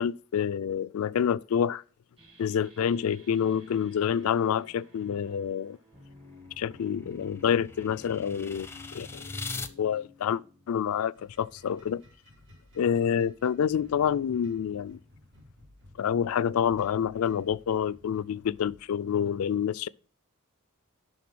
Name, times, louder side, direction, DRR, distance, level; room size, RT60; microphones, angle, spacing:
voice 1, 0.0-1.8 2.4-5.8 6.6-9.3 9.5-10.4 10.7-12.0 12.8-15.0 16.0-19.9, left 8 dB, 80° left, 0.3 m, -28 dB
sound 1, 2.2-11.5, left 2 dB, 25° right, 2.2 m, -52 dB
sound 2, 6.1-9.7, left 3 dB, 10° left, 0.6 m, -41 dB
sound 3, 11.1-18.8, left 1 dB, 60° right, 3.0 m, -57 dB
11.0 x 3.9 x 6.0 m
head